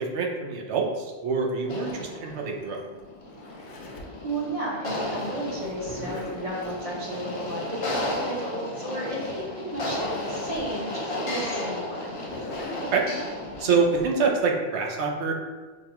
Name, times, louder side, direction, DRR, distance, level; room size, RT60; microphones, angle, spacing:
voice 1, 0.0-2.8 12.9-13.0 13.6-15.3, right 4 dB, 80° right, 0 dB, 0.9 m, -25 dB
Zipper (clothing), 1.5-4.2 5.5-6.8 9.4-9.5 9.7-10.7 11.2-11.3 12.1-14.1, left 2 dB, 85° left, 0.9 m, -41 dB
sound 1, 1.6-14.0, left 1 dB, 40° left, 0.5 m, -34 dB
voice 2, 4.2-12.1, right 1 dB, 35° right, -4 dB, 0.8 m, -33 dB
4.8 x 2.3 x 2.9 m, 1.4 s
omnidirectional pair, 1.1 m